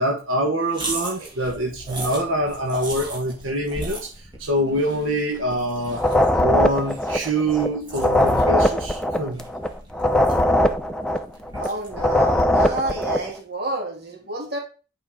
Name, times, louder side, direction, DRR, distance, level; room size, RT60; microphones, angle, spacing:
voice 1, 0.0-6.0 6.4-9.4, right 1 dB, 85° right, 1.5 m, -25 dB
sound 1, 0.7-13.2, right 2 dB, 25° right, 2.2 m, -38 dB
sound 2, 5.9-7.7 7.9-11.7 11.9-13.3, left 1 dB, 5° left, 0.7 m, -20 dB
voice 2, 11.5-14.6, right 2 dB, 55° right, 2.9 m, -30 dB
10.0 x 5.4 x 3.8 m
head